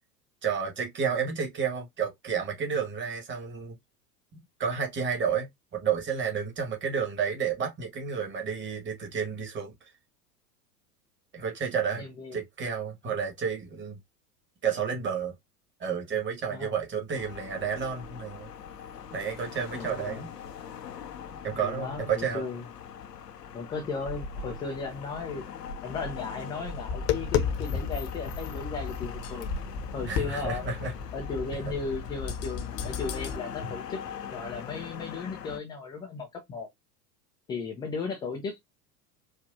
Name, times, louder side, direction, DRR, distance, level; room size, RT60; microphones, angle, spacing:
voice 1, 0.4-3.8 4.6-5.5 5.7-9.7 11.3-12.1 12.3-14.0 14.6-15.3 15.8-18.5 19.1-20.3 21.4-22.4 30.0-30.9 31.5-31.6, right 6 dB, 25° right, 1.6 m, -31 dB
voice 2, 12.0-12.4 16.5-16.8 19.7-20.2 21.5-22.7 23.5-25.4 25.8-29.5 29.9-30.6 31.1-34.0 34.3-36.7 37.5-38.6, left 4 dB, 10° left, 0.3 m, -36 dB
sound 1, 17.1-35.6, left 5 dB, 85° left, 0.7 m, -41 dB
Tap, 26.7-33.4, left 7 dB, 50° left, 0.9 m, -33 dB
4.7 x 2.4 x 2.6 m
figure-of-eight pair, 85°, 47 cm